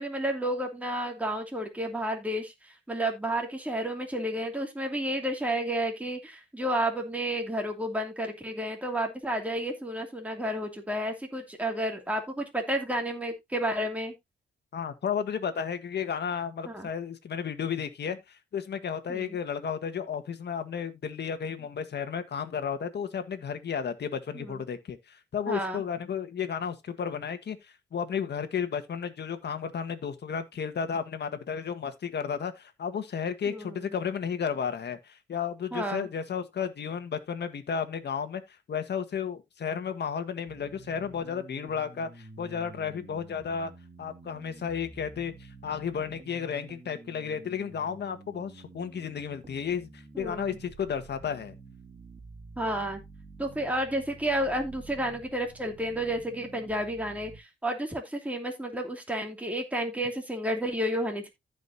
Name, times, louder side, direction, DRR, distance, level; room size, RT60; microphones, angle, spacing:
voice 1, 0.0-14.1 16.7-16.9 19.1-19.4 24.3-24.6 25.5-25.8 33.5-33.8 35.7-36.1 50.1-50.6 52.6-53.0 53.4-61.3, right 1 dB, 5° right, 2.6 m, -31 dB
voice 2, 14.7-43.7 44.0-51.5, left 7 dB, 60° left, 1.7 m, -33 dB
sound 1, 40.5-57.4, right 3 dB, 35° right, 2.5 m, -49 dB
15.0 x 5.3 x 2.8 m
cardioid pair, 85°, 19 cm